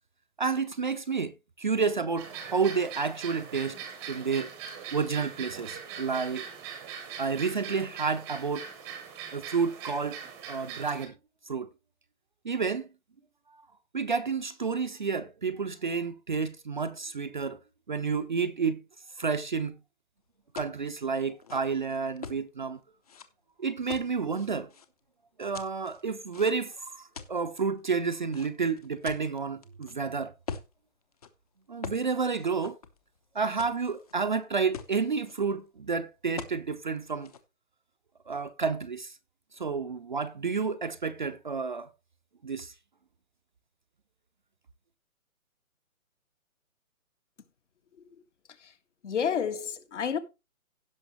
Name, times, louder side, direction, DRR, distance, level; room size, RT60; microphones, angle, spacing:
voice 1, 0.4-1.3 1.6-3.8 4.1-4.5 4.9-6.4 7.2-8.7 9.3-10.2 10.5-11.1 11.5-11.7 12.4-12.9 13.9-17.6 17.9-18.8 19.2-19.8 20.5-22.8 23.6-24.7 25.4-30.3 31.7-32.8 33.3-37.3 38.3-39.1 39.6-41.9 42.4-42.7, right 5 dB, 35° right, 0.6 m, -30 dB
sound 1, 2.2-11.1, right 7 dB, 5° right, 0.8 m, -42 dB
sound 2, 20.5-20.8 21.3-22.4 23.0-23.2 23.9-24.9 25.5-26.7 27.1-27.6 28.3-29.9 30.5-30.7 31.1-31.3 31.8-32.1 32.3-33.2 33.6-34.1 34.4-34.5 34.7-35.3 36.4-36.6 37.0-37.4, left 6 dB, 25° left, 0.8 m, -42 dB
voice 2, 49.0-50.2, left 7 dB, 55° left, 1.8 m, -30 dB
16.5 x 5.9 x 3.1 m
hypercardioid pair, 165°, 42 cm